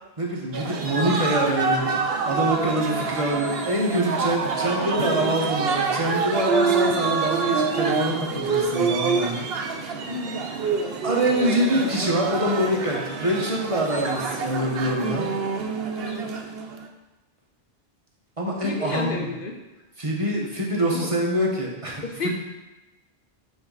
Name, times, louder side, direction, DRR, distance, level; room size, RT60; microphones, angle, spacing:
voice 1, 0.2-9.5 10.6-10.7 11.0-15.3 18.4-19.3 20.0-22.3, right 1 dB, 30° right, -3 dB, 1.3 m, -25 dB
sound 1, 0.5-16.9, right 5 dB, 70° right, 1.0 m, -26 dB
voice 2, 4.9-5.3 10.0-10.4 16.0-16.3 18.6-19.5 20.9-21.1 22.0-22.3, left 3 dB, 60° left, 2 dB, 0.9 m, -32 dB
8.8 x 4.6 x 4.0 m, 1.0 s
omnidirectional pair, 1.1 m